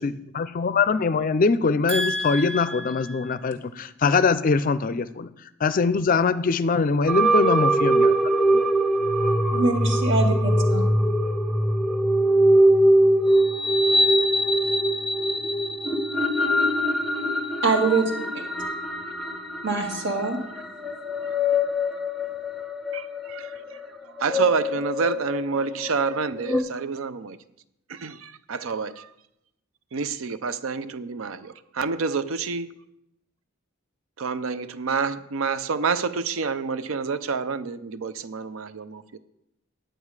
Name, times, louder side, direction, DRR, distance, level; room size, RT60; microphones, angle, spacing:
voice 1, 0.0-5.3 5.6-8.1 8.5-8.7, left 4 dB, 40° left, 0.4 m, -22 dB
voice 2, 1.9-2.9 3.1-3.3 9.5-10.8 17.6-18.0 19.6-20.4, right 3 dB, 60° right, 1.8 m, -25 dB
sound 1, 7.1-26.6, equal, ahead, 0.7 m, -23 dB
voice 3, 22.9-23.8 24.2-27.4 27.9-29.1 29.9-32.8 34.2-39.2, right 5 dB, 80° right, 0.5 m, -28 dB
9.2 x 9.0 x 4.8 m
head